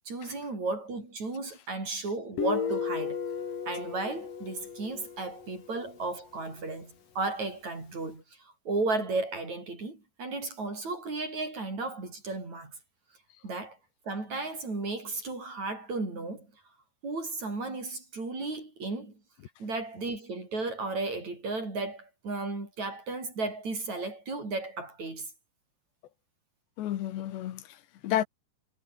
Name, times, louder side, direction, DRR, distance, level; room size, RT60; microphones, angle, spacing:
voice 1, 0.1-3.2 3.7-8.2 8.7-12.8 13.4-13.8 14.1-16.5 17.0-19.1 19.6-25.3, right 3 dB, 40° right, 9.2 m, -34 dB
Guitar, 2.4-5.9, left 6 dB, 55° left, 5.0 m, -34 dB
voice 2, 26.8-28.2, left 12 dB, 85° left, 3.9 m, -32 dB
omnidirectional pair, 4.8 m